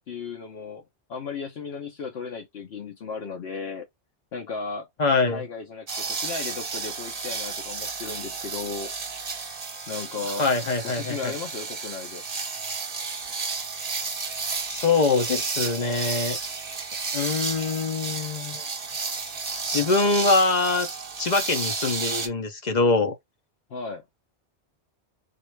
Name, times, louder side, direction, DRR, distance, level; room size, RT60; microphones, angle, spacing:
voice 1, 0.1-0.8 1.1-3.9 4.3-4.9 5.3-8.9 9.9-10.5 10.8-12.2 23.7-24.0, left 4 dB, 70° left, 1.0 m, -35 dB
voice 2, 5.0-5.4 10.4-11.3 14.7-16.4 17.1-18.6 19.7-20.9 21.2-23.2, left 3 dB, 45° left, 0.7 m, -23 dB
sound 1, 5.9-22.3, right 4 dB, 40° right, 0.9 m, -32 dB
3.9 x 2.4 x 3.2 m
omnidirectional pair, 1.1 m